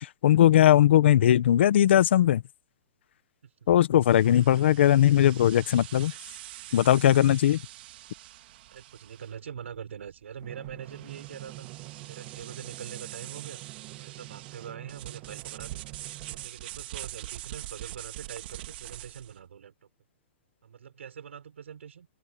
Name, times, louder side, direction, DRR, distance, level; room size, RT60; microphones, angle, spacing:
voice 1, 0.0-2.4 3.7-6.1 6.7-7.6, left 11 dB, 65° left, 1.4 m, -19 dB
sound 1, 4.0-19.4, right 15 dB, 55° right, 2.4 m, -44 dB
voice 2, 8.7-11.7 12.0-13.6 13.9-15.8 16.2-19.7 20.6-22.1, right 8 dB, 85° right, 6.6 m, -43 dB
Drum, 10.4-16.5, right 22 dB, 35° right, 2.2 m, -46 dB
hypercardioid pair, 150°, 6 cm